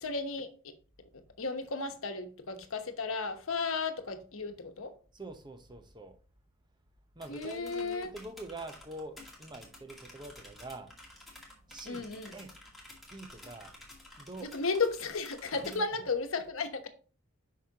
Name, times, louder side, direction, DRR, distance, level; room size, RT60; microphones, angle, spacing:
voice 1, 0.0-0.5 1.4-4.9 7.3-8.1 11.9-12.3 14.5-16.9, left 4 dB, 70° left, 1.1 m, -34 dB
voice 2, 5.1-6.2 7.1-10.9 11.7-12.6 13.1-13.7 14.2-14.5 15.5-16.1, right 2 dB, 20° right, 0.9 m, -45 dB
sound 1, 7.2-15.8, left 1 dB, ahead, 2.1 m, -53 dB
8.1 x 5.9 x 2.9 m
head